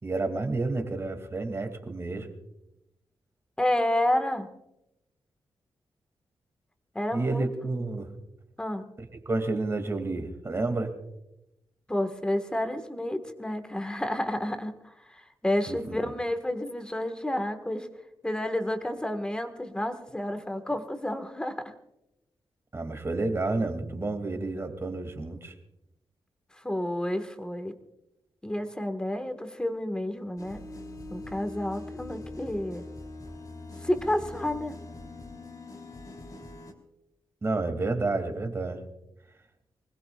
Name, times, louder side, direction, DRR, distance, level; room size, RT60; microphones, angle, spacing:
voice 1, 0.0-2.3 7.1-8.1 9.3-10.9 15.7-15.9 22.7-25.5 37.4-38.8, right 3 dB, 30° right, 7 dB, 2.4 m, -30 dB
voice 2, 3.6-4.5 6.9-7.4 8.6-8.9 11.9-17.9 18.2-21.7 26.6-27.7 28.4-30.7 31.1-32.9 33.8-34.8, left 1 dB, 10° left, 7 dB, 1.6 m, -30 dB
sound 1, 30.4-36.7, left 2 dB, 40° left, 3.1 m, -42 dB
25.5 x 20.0 x 2.4 m, 0.88 s
wide cardioid pair, 135°, 9 cm